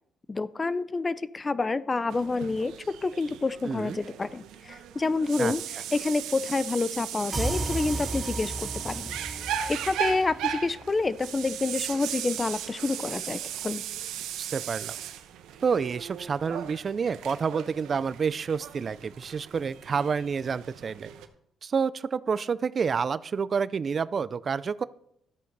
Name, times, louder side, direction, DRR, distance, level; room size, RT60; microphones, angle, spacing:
voice 1, 0.3-5.6 5.9-9.1 9.7-13.8, left 3 dB, 25° left, 17 dB, 0.4 m, -28 dB
sound 1, 2.1-21.3, right 10 dB, 90° right, 0.9 m, -37 dB
voice 2, 3.7-4.0 5.4-5.5 14.4-15.0 15.6-21.1 21.6-24.8, right 6 dB, 45° right, 17 dB, 0.4 m, -29 dB
sound 2, 7.3-10.8, right 2 dB, 25° right, 3.1 m, -34 dB
13.0 x 8.3 x 4.0 m, 0.75 s
cardioid pair, 90°, 0 cm